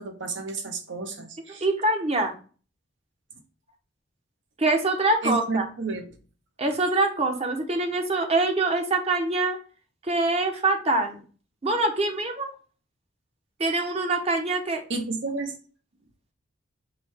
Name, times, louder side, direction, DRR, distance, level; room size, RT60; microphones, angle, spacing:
voice 1, 0.0-1.6 5.2-6.1 14.9-15.5, right 3 dB, 65° right, 0.9 m, -31 dB
voice 2, 1.6-2.3 4.6-5.7 6.6-9.6 10.0-11.2 11.6-12.5 13.6-14.8, right 2 dB, 30° right, 0.9 m, -24 dB
5.0 x 2.3 x 4.5 m
head